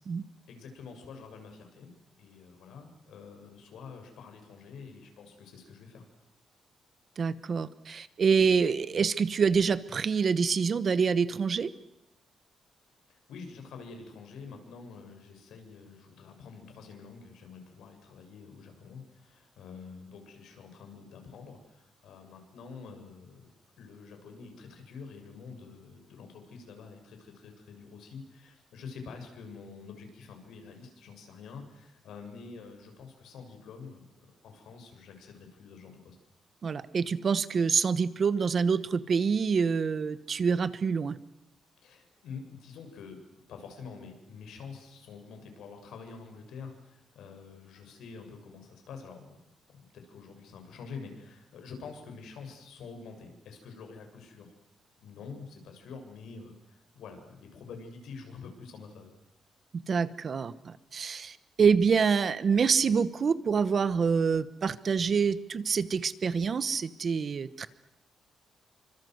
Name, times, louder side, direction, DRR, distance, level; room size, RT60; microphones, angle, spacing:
voice 1, 0.5-1.9 2.2-6.0 13.1-23.5 23.8-36.2 41.8-49.4 49.7-54.6 55.0-59.1, left 5 dB, 90° left, 5 dB, 7.4 m, -47 dB
voice 2, 7.2-11.7 36.6-41.2 59.7-67.7, right 6 dB, 35° right, 15 dB, 1.1 m, -26 dB
28.5 x 25.0 x 8.0 m, 0.87 s
wide cardioid pair, 175°, 0 cm